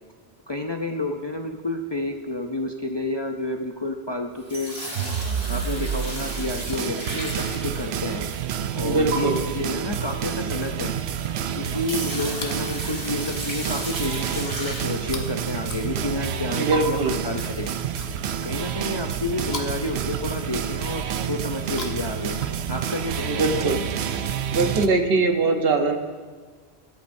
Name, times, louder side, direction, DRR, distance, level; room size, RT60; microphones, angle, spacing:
voice 1, 0.5-4.7 5.5-8.3 8.8-10.9 11.6-17.7 18.4-22.4 22.7-23.7, left 2 dB, 35° left, 3 dB, 0.5 m, -30 dB
sound 1, 4.3-8.3 9.1-9.2 11.2-11.3 11.6-15.3 15.8-16.0 16.7-16.8 18.3-18.6, right 1 dB, 25° right, 2.1 m, -34 dB
sound 2, 5.0-24.9, right 8 dB, 85° right, 0.9 m, -29 dB
voice 2, 8.8-9.4 16.6-17.1 23.3-23.8 24.5-26.0, right 3 dB, 65° right, 4 dB, 1.2 m, -22 dB
Chewing mastication, 12.4-12.7 13.1-13.7 15.0-16.4 17.3-18.6 19.4-20.7 21.6-23.0 23.9-24.0, left 3 dB, 75° left, 1.4 m, -41 dB
22.0 x 8.5 x 2.7 m, 1.5 s
omnidirectional pair, 1.1 m